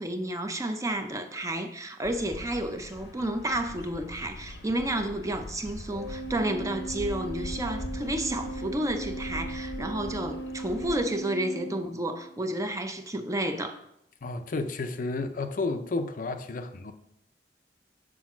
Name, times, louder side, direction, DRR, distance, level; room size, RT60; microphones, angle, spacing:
voice 1, 0.0-13.8, right 1 dB, 20° right, 0.6 m, -31 dB
Bird vocalization bird call bird song, 2.0-11.0, left 1 dB, 80° left, 0.8 m, -42 dB
Organ, 5.9-12.4, right 2 dB, 85° right, 2.1 m, -38 dB
voice 2, 14.2-16.9, left 3 dB, 50° left, 0.5 m, -31 dB
6.2 x 4.7 x 5.9 m
head